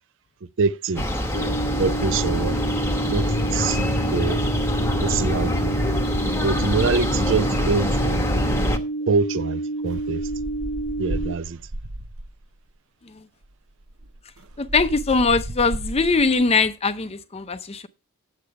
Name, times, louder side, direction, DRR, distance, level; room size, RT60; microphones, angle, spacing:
voice 1, 0.6-2.6 3.1-3.3 3.5-4.4 5.0-5.8 6.4-8.2 9.1-10.2 11.0-11.6, right 4 dB, 60° right, 0.5 m, -25 dB
sound 1, 1.0-8.8, left 1 dB, 10° left, 0.9 m, -24 dB
sound 2, 1.3-11.3, right 2 dB, 75° left, 0.9 m, -29 dB
sound 3, 9.9-12.4 13.4-13.5 13.8-16.4, right 1 dB, 75° right, 0.8 m, -34 dB
voice 2, 14.6-17.9, left 4 dB, 25° left, 0.6 m, -21 dB
8.6 x 8.1 x 4.7 m
head